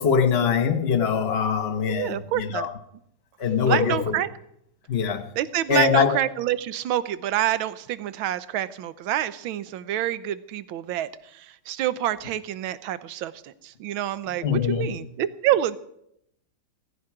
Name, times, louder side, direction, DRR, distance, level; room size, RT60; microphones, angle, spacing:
voice 1, 0.0-2.7 3.4-4.0 4.9-5.2 5.7-6.2 14.4-14.9, left 7 dB, 35° left, 1.3 m, -22 dB
voice 2, 1.9-2.7 3.6-4.3 5.4-15.8, right 12 dB, 75° right, 1.6 m, -27 dB
17.5 x 15.0 x 4.9 m
omnidirectional pair, 2.3 m